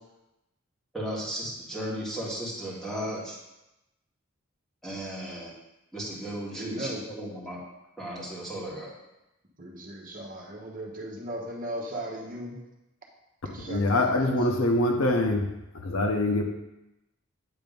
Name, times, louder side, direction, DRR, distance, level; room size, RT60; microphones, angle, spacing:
voice 1, 0.9-3.4 4.8-5.5 5.9-7.6 8.0-8.9, equal, ahead, -7 dB, 2.0 m, -35 dB
voice 2, 6.6-7.0 9.6-12.6 13.4-14.5, right 1 dB, 40° right, -1 dB, 1.1 m, -37 dB
voice 3, 13.7-15.5 15.8-16.4, left 1 dB, 85° left, 3 dB, 0.9 m, -24 dB
8.8 x 3.4 x 5.2 m, 0.94 s
head